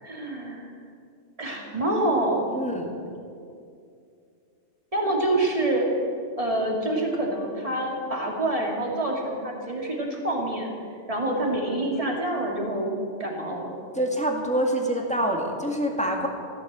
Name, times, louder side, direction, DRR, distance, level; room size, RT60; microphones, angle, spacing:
voice 1, 0.0-0.7 1.4-2.5 4.9-5.9 6.4-10.7 11.1-12.9 13.2-13.7, right 1 dB, 30° right, -1 dB, 2.7 m, -26 dB
voice 2, 2.5-2.9 13.9-16.3, right 1 dB, 5° left, 0 dB, 2.0 m, -26 dB
15.0 x 11.5 x 7.6 m, 2.4 s
omnidirectional pair, 1.2 m